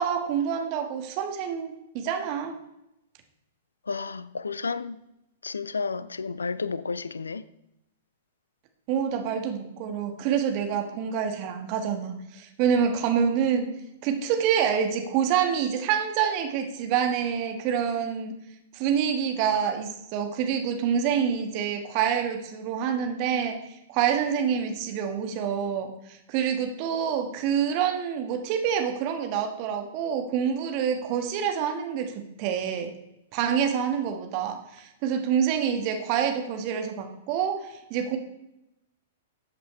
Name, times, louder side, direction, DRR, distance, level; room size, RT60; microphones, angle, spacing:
voice 1, 0.0-2.5 8.9-13.7 14.0-18.3 18.7-23.6 23.9-32.1 32.4-32.9 33.3-38.2, right 8 dB, 40° right, 1.6 m, -27 dB
voice 2, 3.8-5.0 5.4-7.4 10.9-11.0, left 4 dB, 75° left, 0.4 m, -32 dB
14.5 x 7.9 x 3.3 m
figure-of-eight pair, 105°, 0 cm